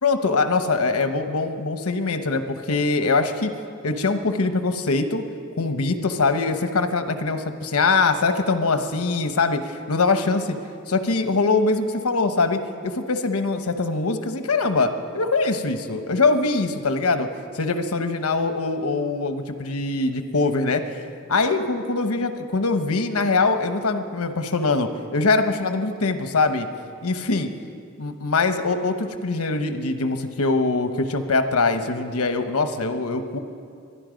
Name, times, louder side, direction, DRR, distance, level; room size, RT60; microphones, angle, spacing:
voice 1, 0.0-3.5 3.8-5.2 5.6-10.5 10.9-17.3 17.5-20.8 21.3-26.7 27.0-27.5 28.0-33.4, left 3 dB, 85° left, 8 dB, 1.1 m, -23 dB
24.0 x 11.5 x 5.2 m, 2.4 s
head